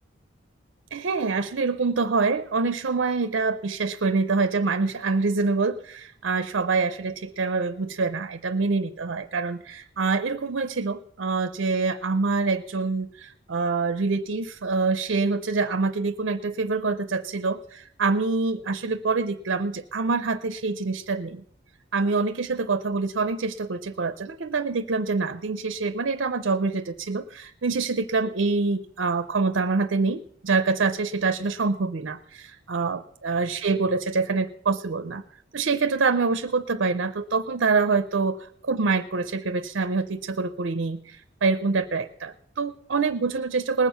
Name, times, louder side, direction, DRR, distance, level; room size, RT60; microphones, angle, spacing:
voice 1, 0.9-21.4 21.9-35.2 35.5-38.4 38.6-43.9, right 4 dB, 65° right, 10 dB, 0.6 m, -25 dB
20.0 x 7.4 x 5.8 m, 0.66 s
head